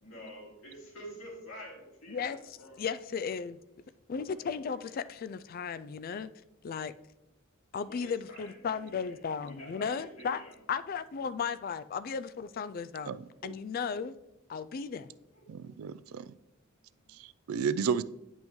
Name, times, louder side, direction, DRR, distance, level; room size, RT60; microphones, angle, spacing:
voice 1, 0.0-2.9 4.3-4.9 7.8-9.2 9.4-10.6 15.3-15.7 16.8-17.0, equal, 90° left, 2.7 m, -49 dB
voice 2, 2.1-3.6 4.1-6.3 6.6-6.9 7.7-10.4 10.7-13.1 13.4-14.2 14.5-15.1, left 6 dB, 45° left, 0.3 m, -35 dB
voice 3, 13.1-13.5 15.5-16.3 17.1-18.0, right 6 dB, 90° right, 0.3 m, -33 dB
8.7 x 5.4 x 3.1 m
head